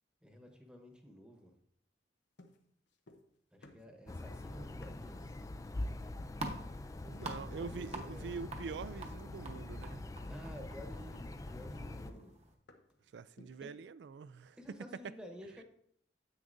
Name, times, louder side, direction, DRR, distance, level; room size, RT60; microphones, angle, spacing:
voice 1, 0.2-1.5 3.5-5.4 7.0-8.3 10.3-12.3 13.6-13.7 14.6-15.6, equal, 5° right, 1.1 m, -52 dB
sound 1, 2.4-3.4 3.6-5.2 5.8-6.1 6.5-6.8 7.2-7.5 7.9-8.6 8.9-9.2 9.6-9.9 10.2-10.5 10.8-13.0 13.4-13.7, left 1 dB, 80° left, 0.9 m, -61 dB
sound 2, 4.1-12.1, left 2 dB, 20° left, 0.3 m, -44 dB
sound 3, 5.8-12.5, right 2 dB, 35° right, 1.0 m, -48 dB
voice 2, 7.0-10.0 13.1-14.6, right 5 dB, 70° right, 0.3 m, -45 dB
9.6 x 8.3 x 2.6 m
head